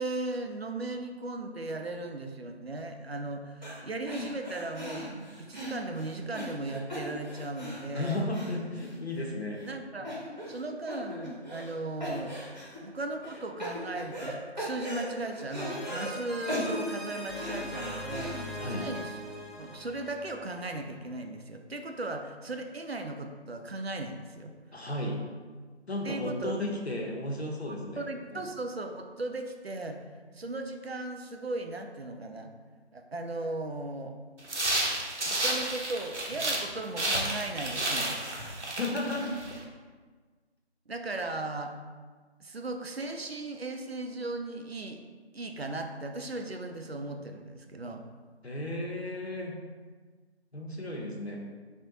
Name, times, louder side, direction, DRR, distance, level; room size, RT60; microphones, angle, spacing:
voice 1, 0.0-5.1 5.4-8.3 9.7-10.1 10.5-12.4 12.8-19.2 19.6-24.5 26.0-26.6 27.7-30.0 30.3-32.5 32.9-34.2 35.2-38.2 40.9-41.7 42.4-45.0 45.3-48.0, right 2 dB, 65° right, 4 dB, 0.5 m, -37 dB
sound 1, 3.6-3.8 4.1-9.3 9.6-9.7 10.0-10.6 10.9-11.7 12.0-12.8 13.2-14.3 14.6-16.1 16.5-18.6, equal, 40° right, 0.8 m, -38 dB
voice 2, 7.9-9.6 10.0-10.1 18.6-18.9 24.7-25.2 25.9-28.1 28.3-28.4 38.8-39.4 48.4-49.6 50.5-51.4, left 1 dB, 70° left, 1 dB, 0.8 m, -34 dB
sound 2, 12.1-13.1 15.6-21.2, equal, ahead, 0.4 m, -42 dB
sound 3, 34.4-36.7 37.0-39.6, right 1 dB, 90° right, 0.9 m, -31 dB
3.4 x 2.6 x 3.9 m, 1.4 s
figure-of-eight pair, 180°, 34 cm